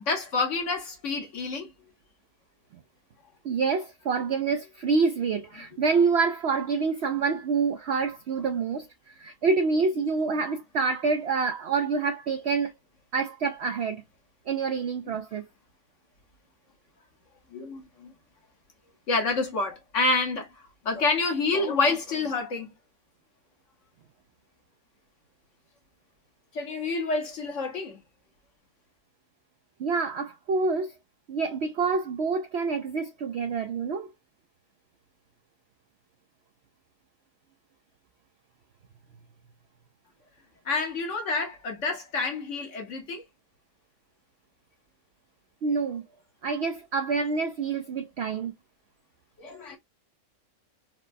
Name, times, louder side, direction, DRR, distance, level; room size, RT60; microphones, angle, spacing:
voice 1, 0.0-1.7 17.5-18.1 19.1-20.5 20.8-22.7 26.5-28.0 40.6-43.2 49.4-49.8, left 3 dB, 55° left, 1.3 m, -28 dB
voice 2, 3.4-8.9 9.2-12.7 13.1-14.0 14.5-15.4 29.8-30.9 31.3-34.1 45.6-46.0 46.4-48.5, right 4 dB, 70° right, 0.6 m, -27 dB
4.4 x 2.1 x 2.5 m
omnidirectional pair, 1.6 m